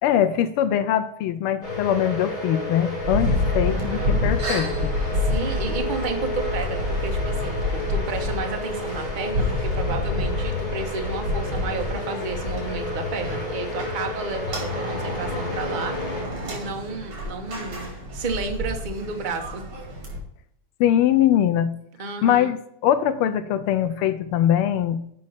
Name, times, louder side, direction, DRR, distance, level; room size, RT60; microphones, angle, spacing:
voice 1, 0.0-4.9 20.8-21.7 22.2-22.6 22.8-25.0, left 10 dB, 85° left, 11 dB, 1.5 m, -22 dB
sound 1, 1.6-16.2, left 2 dB, 20° left, 3.0 m, -31 dB
sound 2, 3.0-20.2, left 1 dB, 80° right, 3.5 m, -28 dB
voice 2, 3.7-4.1 5.2-16.0 16.5-17.8 18.1-19.6 22.0-22.5, right 4 dB, 30° right, 4 dB, 0.9 m, -32 dB
7.6 x 5.3 x 5.6 m, 0.71 s
omnidirectional pair, 2.4 m